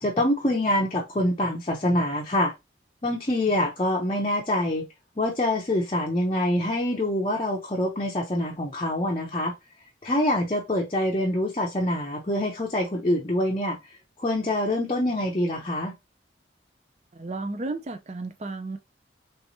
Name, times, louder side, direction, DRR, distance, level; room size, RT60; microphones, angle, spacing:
voice 1, 0.0-2.5 3.0-4.9 5.2-9.5 10.0-13.8 14.2-15.9, left 1 dB, 30° left, 0.6 m, -25 dB
voice 2, 17.1-18.8, right 3 dB, 35° right, 0.5 m, -33 dB
3.4 x 2.9 x 2.7 m
head